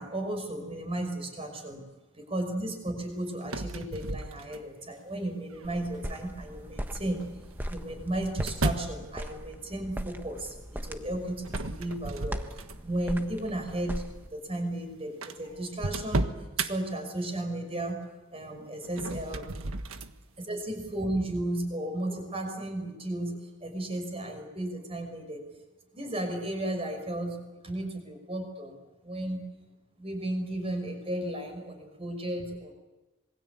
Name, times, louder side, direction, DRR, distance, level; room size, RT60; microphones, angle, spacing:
voice 1, 0.0-1.9 2.1-7.4 7.7-12.4 12.8-14.0 14.3-16.3 16.6-18.0 18.3-19.5 20.4-25.4 25.9-29.5 30.0-32.7, right 1 dB, 25° right, 5 dB, 5.9 m, -34 dB
sound 1, 3.4-4.9 5.5-6.0 7.1-9.0 11.4-13.0 13.5-13.7 14.5-14.6 14.8-14.9 15.2-16.7 18.8-20.1, right 2 dB, 85° right, 1.5 m, -33 dB
sound 2, 5.6-14.3, equal, 10° right, 1.3 m, -40 dB
26.5 x 22.5 x 8.6 m, 1.1 s
head